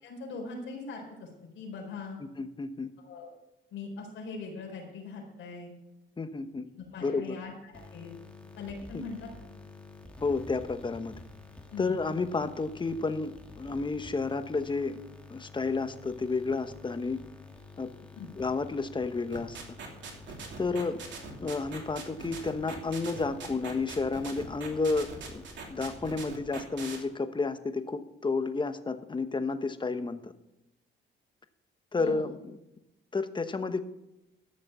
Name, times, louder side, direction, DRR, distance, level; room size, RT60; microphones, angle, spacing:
voice 1, 0.0-1.3 1.5-2.2 3.0-3.3 3.7-5.7 6.8-8.1 8.6-9.3 11.7-11.9 18.1-18.3 32.0-32.2, left 4 dB, 80° left, -1 dB, 4.4 m, -41 dB
voice 2, 2.4-2.9 6.2-6.7 7.0-7.3 8.9-9.0 10.2-11.1 11.8-15.0 15.3-17.2 17.8-17.9 18.4-19.6 20.6-21.0 21.4-30.3 31.9-32.6 33.1-33.8, left 3 dB, 25° left, 10 dB, 1.0 m, -31 dB
sound 1, 7.7-26.5, left 3 dB, 5° left, 2.2 m, -50 dB
sound 2, 19.3-27.0, right 5 dB, 65° right, 2.9 m, -41 dB
13.5 x 6.6 x 6.8 m, 0.91 s
cardioid pair, 90°, 20 cm